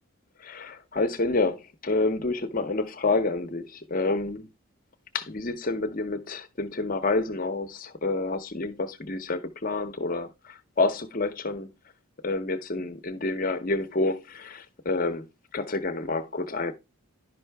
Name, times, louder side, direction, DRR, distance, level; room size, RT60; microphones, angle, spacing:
voice 1, 0.4-4.5 5.1-11.7 12.2-15.2 15.5-16.7, left 3 dB, 40° left, 0.6 m, -28 dB
10.5 x 5.6 x 3.3 m
head